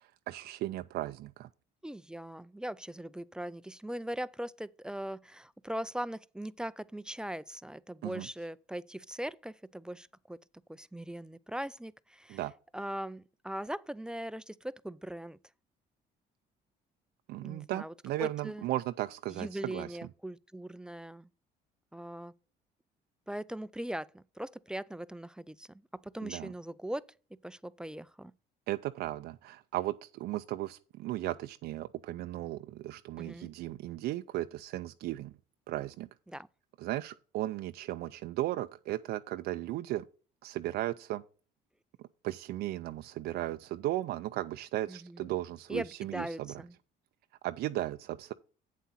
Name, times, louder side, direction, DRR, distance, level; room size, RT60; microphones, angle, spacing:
voice 1, 0.3-1.5 8.0-8.3 12.3-12.5 17.3-19.9 26.2-26.5 28.7-35.3 35.7-36.1 36.8-40.0 40.4-41.2 42.2-46.5 47.4-48.3, right 15 dB, 75° right, 0.4 m, -36 dB
voice 2, 1.8-10.4 10.7-12.5 12.7-15.4 17.4-17.9 18.2-18.7 19.3-21.3 21.9-22.3 23.3-27.1 27.4-28.3 33.2-33.5 36.3-36.5 44.9-45.3 45.7-46.8, right 1 dB, 5° right, 0.3 m, -40 dB
8.3 x 7.5 x 4.1 m
cardioid pair, 110°, 17 cm